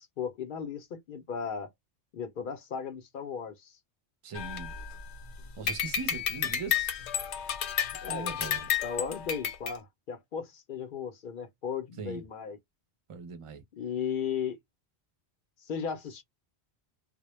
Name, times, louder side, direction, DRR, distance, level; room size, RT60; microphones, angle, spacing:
voice 1, 0.0-1.7 2.1-3.8 8.0-12.6 13.7-14.6 15.6-16.2, left 7 dB, 60° left, 0.6 m, -36 dB
voice 2, 4.2-4.7 5.6-7.0 8.1-8.7 12.0-12.2 13.1-13.6, right 5 dB, 40° right, 0.5 m, -40 dB
sound 1, 4.3-5.2 5.7-9.7, left 9 dB, 90° left, 0.9 m, -32 dB
2.1 x 2.0 x 3.0 m
omnidirectional pair, 1.1 m